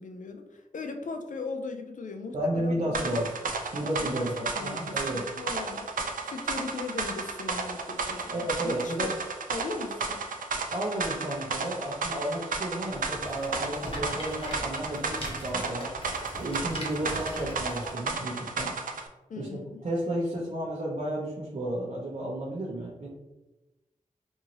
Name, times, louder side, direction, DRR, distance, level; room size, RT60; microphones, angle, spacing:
voice 1, 0.0-3.3 4.0-4.3 4.5-5.9 6.2-9.2 9.5-10.2 19.3-19.8, left 3 dB, 65° left, 6 dB, 0.4 m, -38 dB
voice 2, 2.3-3.3 3.7-5.2 8.3-9.1 10.7-15.9 16.4-18.7 19.4-19.5 19.8-23.1, right 1 dB, 55° right, -6 dB, 0.8 m, -32 dB
sound 1, 2.9-19.1, right 4 dB, 75° right, 0.4 m, -33 dB
Rattle, 12.8-17.9, equal, 40° left, 1.1 m, -40 dB
2.7 x 2.6 x 2.8 m, 1.0 s
cardioid pair, 40°, 14 cm